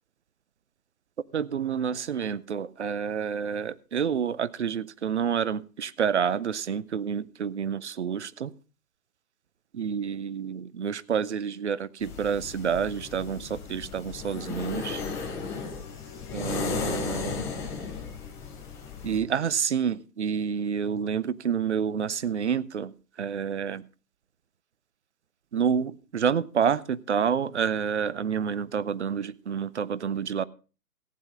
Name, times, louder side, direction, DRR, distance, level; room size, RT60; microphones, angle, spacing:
voice 1, 1.3-8.5 9.7-15.0 16.3-17.5 19.0-22.9 23.2-23.8 25.5-30.4, right 7 dB, 45° right, 19 dB, 0.5 m, -28 dB
sound 1, 12.0-19.2, left 5 dB, 30° left, 3.5 m, -35 dB
15.0 x 9.4 x 3.7 m, 0.34 s
figure-of-eight pair, 135°, 48 cm